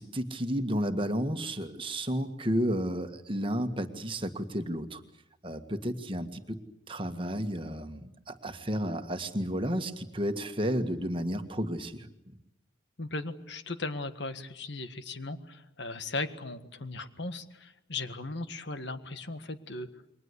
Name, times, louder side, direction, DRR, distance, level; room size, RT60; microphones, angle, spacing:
voice 1, 0.0-5.0 5.4-6.6 6.9-12.1, equal, 25° right, 7 dB, 1.7 m, -32 dB
voice 2, 13.0-19.9, left 3 dB, 60° left, 10 dB, 1.7 m, -37 dB
29.0 x 23.0 x 8.3 m, 0.83 s
head